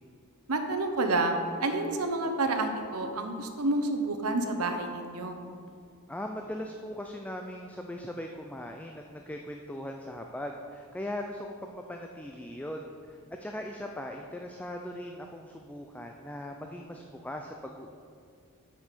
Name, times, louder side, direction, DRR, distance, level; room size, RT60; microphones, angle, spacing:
voice 1, 0.5-5.4, right 2 dB, 85° right, 6 dB, 0.9 m, -29 dB
voice 2, 6.1-17.9, left 1 dB, 5° left, 2 dB, 0.4 m, -39 dB
7.8 x 5.5 x 6.7 m, 2.3 s
head